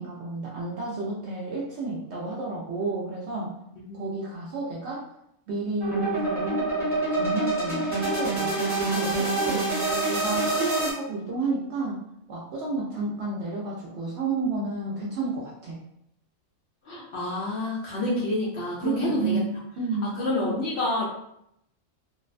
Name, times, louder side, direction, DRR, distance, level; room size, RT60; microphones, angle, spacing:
voice 1, 0.0-3.6 3.9-5.0 5.5-6.7 7.1-8.5 8.9-9.7 10.1-15.8 18.8-20.2, right 3 dB, 65° right, -4 dB, 0.7 m, -31 dB
sound 1, 5.8-10.9, right 2 dB, 15° right, 0.8 m, -26 dB
voice 2, 16.9-19.4 20.2-21.0, left 1 dB, 65° left, -4 dB, 0.7 m, -28 dB
2.5 x 2.1 x 2.4 m, 0.75 s
omnidirectional pair, 1.5 m